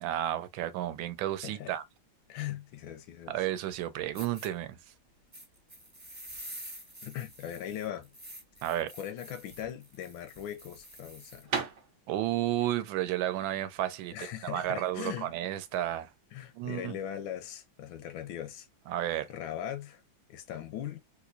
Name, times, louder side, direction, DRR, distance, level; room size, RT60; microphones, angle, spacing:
voice 1, 0.0-1.8 3.3-4.8 8.6-8.9 12.1-16.1 16.5-17.0 18.9-19.3, right 13 dB, 80° right, 1.3 m, -32 dB
voice 2, 1.4-1.7 2.3-3.4 7.0-8.1 9.0-11.5 14.1-15.3 16.3-18.7 19.3-20.0 20.3-21.0, left 10 dB, 85° left, 1.5 m, -39 dB
sound 1, 4.1-4.5 5.3-11.5, right 1 dB, 15° right, 1.3 m, -48 dB
sound 2, 9.8-15.2, right 6 dB, 60° right, 0.7 m, -40 dB
3.5 x 2.9 x 2.5 m
omnidirectional pair, 2.2 m